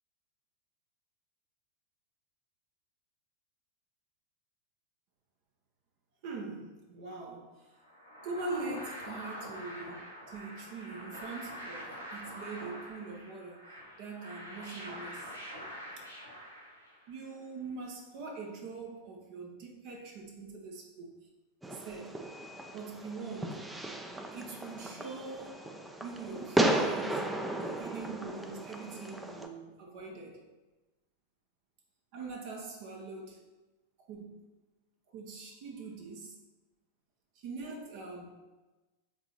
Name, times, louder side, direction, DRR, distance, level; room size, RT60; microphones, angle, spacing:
voice 1, 6.2-7.7 8.2-13.6 14.0-15.3 17.1-21.1 21.6-22.1 22.7-23.6 24.3-25.7 26.0-27.3 27.6-30.4 32.1-33.4 34.1-34.3 35.1-36.4 37.3-38.3, right 3 dB, 45° right, 1 dB, 1.0 m, -42 dB
sound 1, 7.8-17.2, equal, 85° right, 1.7 m, -45 dB
Fireworks, 21.6-29.5, right 1 dB, 5° right, 0.6 m, -35 dB
7.2 x 3.9 x 4.4 m, 1.2 s
figure-of-eight pair, 90°, 0 cm